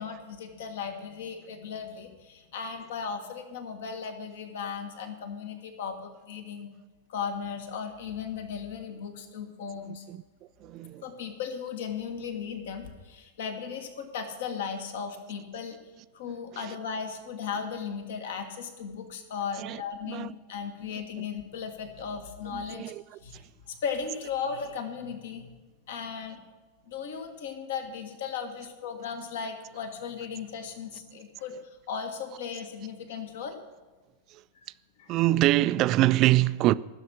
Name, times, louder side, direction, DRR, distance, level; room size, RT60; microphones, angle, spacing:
voice 1, 0.0-6.7 7.1-10.0 11.0-15.8 16.1-22.8 23.2-25.5 25.9-26.4 26.8-31.6 31.9-33.6 34.5-34.7 35.0-35.2, left 6 dB, 55° left, 1.5 m, -36 dB
voice 2, 10.6-11.0 19.6-20.3 22.5-23.0 23.3-23.4 34.3-34.4 35.1-36.7, right 16 dB, 35° right, 0.3 m, -24 dB
15.0 x 7.1 x 6.3 m
figure-of-eight pair, 90°, 0 cm